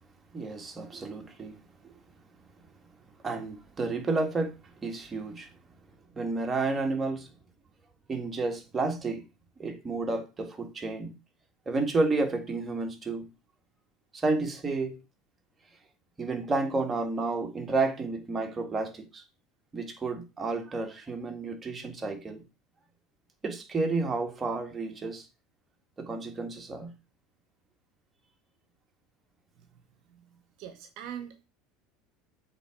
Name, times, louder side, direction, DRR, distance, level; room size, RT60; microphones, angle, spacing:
voice 1, 0.3-1.6 1.8-1.9 3.2-4.5 4.8-5.5 6.2-7.3 8.1-9.2 9.6-11.1 11.7-13.3 14.1-15.0 16.2-19.2 19.7-22.4 23.4-25.3 26.0-26.9, right 3 dB, 20° right, 1.7 m, -31 dB
voice 2, 30.6-31.4, right 9 dB, 65° right, 1.0 m, -42 dB
7.8 x 3.6 x 4.5 m
supercardioid pair, 105°, 0 cm